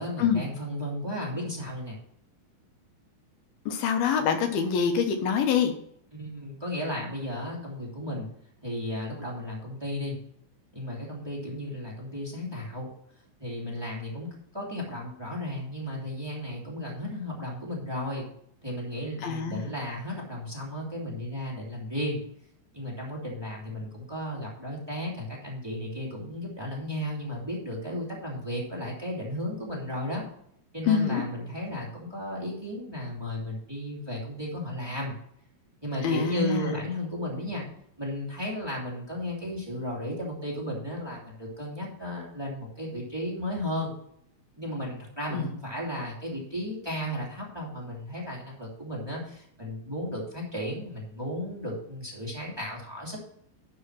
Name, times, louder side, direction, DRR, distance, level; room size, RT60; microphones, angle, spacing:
voice 1, 0.0-2.0 6.1-8.3 8.6-10.2 10.7-12.9 13.4-14.3 14.5-18.3 18.6-22.2 22.7-30.2 30.7-35.1 35.8-37.6 38.0-43.9 44.6-53.2, left 1 dB, 10° right, -3 dB, 1.9 m, -34 dB
voice 2, 3.7-5.7 19.2-19.7 30.9-31.2 36.0-36.8 45.3-45.5, left 7 dB, 80° left, 6 dB, 2.9 m, -25 dB
11.5 x 4.9 x 5.9 m, 0.69 s
omnidirectional pair, 4.5 m